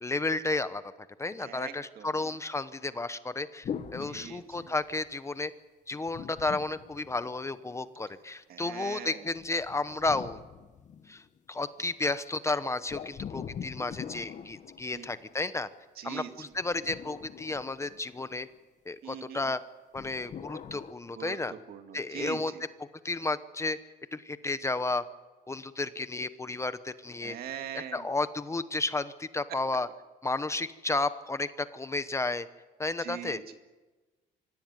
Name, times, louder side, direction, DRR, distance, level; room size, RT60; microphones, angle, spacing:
voice 1, 0.0-0.8 1.2-5.5 5.9-10.4 11.1-11.2 11.5-15.7 16.0-18.5 18.9-19.6 19.9-21.5 21.9-22.5 22.8-23.8 24.1-25.0 25.5-27.4 27.7-29.9 30.2-32.5 32.8-33.4, left 3 dB, 15° left, 13 dB, 0.9 m, -32 dB
voice 2, 1.4-2.3 4.1-4.7 8.5-9.2 14.9-15.1 16.0-16.5 19.0-19.5 21.1-22.6 27.2-28.1 33.0-33.5, right 9 dB, 65° right, 7 dB, 2.2 m, -42 dB
sound 1, 3.6-5.1 6.1-7.7 9.4-11.4 12.9-15.4 16.5-18.4 19.9-20.9, left 8 dB, 45° left, 1.4 m, -43 dB
25.5 x 15.5 x 9.7 m, 1.2 s
cardioid pair, 110°, 17 cm